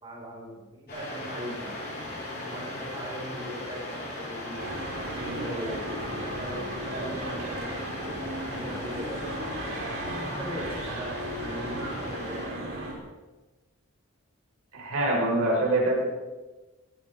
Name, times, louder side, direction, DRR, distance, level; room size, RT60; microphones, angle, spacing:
voice 1, 0.0-1.8 2.4-4.6 5.1-8.1 8.4-9.2 9.6-9.7 10.4-12.8, equal, 20° right, -3 dB, 5.7 m, -39 dB
sound 1, 0.9-12.5, left 1 dB, 45° left, 7.4 m, -38 dB
sound 2, 4.6-12.9, right 1 dB, 60° right, 5.0 m, -36 dB
voice 2, 14.7-16.0, right 1 dB, 80° right, -2 dB, 5.3 m, -24 dB
20.5 x 18.0 x 3.8 m, 1.2 s
head